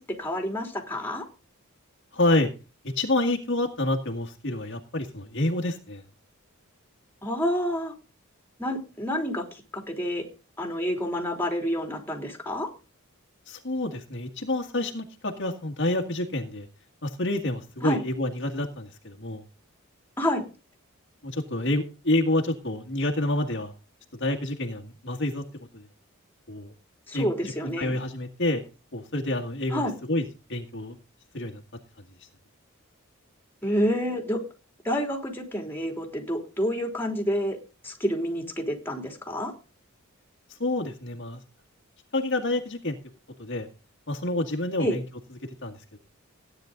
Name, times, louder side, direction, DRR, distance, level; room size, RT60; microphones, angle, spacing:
voice 1, 0.1-1.2 7.2-7.9 8.6-9.4 9.7-10.2 10.6-12.7 17.8-18.0 20.2-20.4 27.1-28.0 29.7-29.9 33.6-34.4 34.8-37.6 37.8-39.5 44.8-45.0, equal, 10° left, 2 dB, 3.2 m, -28 dB
voice 2, 2.1-2.5 3.0-6.0 13.5-16.7 17.0-19.4 21.2-23.7 24.2-25.4 25.7-25.9 26.5-26.7 27.1-27.3 27.8-28.6 28.9-31.0 31.3-31.6 40.5-41.4 42.1-43.0 43.4-43.7 44.1-45.0 45.6-46.0, left 1 dB, 55° left, 3 dB, 1.9 m, -28 dB
16.0 x 9.7 x 3.9 m, 0.32 s
head